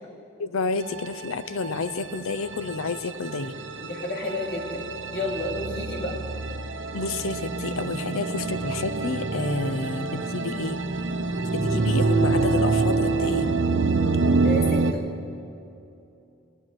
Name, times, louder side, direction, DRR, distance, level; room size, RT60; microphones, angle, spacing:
voice 1, 0.4-3.6 6.9-10.8 11.5-13.5, left 3 dB, 85° left, 12 dB, 0.6 m, -30 dB
sound 1, 0.9-14.9, right 3 dB, 65° right, 0.7 m, -26 dB
voice 2, 3.9-4.8 5.1-6.2 14.4-15.0, left 1 dB, 50° left, -3 dB, 2.7 m, -30 dB
19.5 x 9.2 x 6.2 m, 2.7 s
head